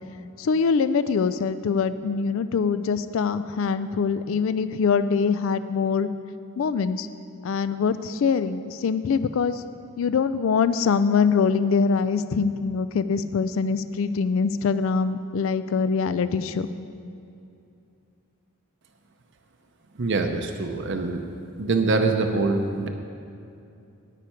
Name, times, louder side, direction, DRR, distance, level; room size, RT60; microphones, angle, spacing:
voice 1, 0.4-6.1 6.6-7.1 7.4-9.6 10.0-16.7, left 5 dB, 65° left, 13 dB, 0.3 m, -23 dB
voice 2, 20.0-21.2 21.6-22.9, right 3 dB, 55° right, 5 dB, 0.6 m, -24 dB
10.0 x 9.9 x 4.4 m, 2.6 s
head